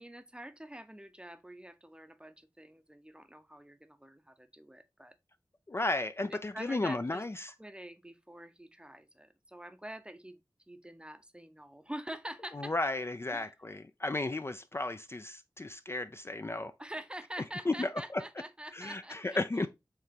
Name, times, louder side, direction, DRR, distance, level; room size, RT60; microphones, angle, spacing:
voice 1, 0.0-5.2 6.3-7.2 7.6-10.4 10.7-12.7 13.3-13.5 16.8-19.4, right 1 dB, 10° right, 0.6 m, -46 dB
voice 2, 5.7-7.5 12.5-16.7 17.7-18.2 18.7-19.7, left 2 dB, 30° left, 0.3 m, -34 dB
4.8 x 3.3 x 2.9 m
wide cardioid pair, 45°, 8 cm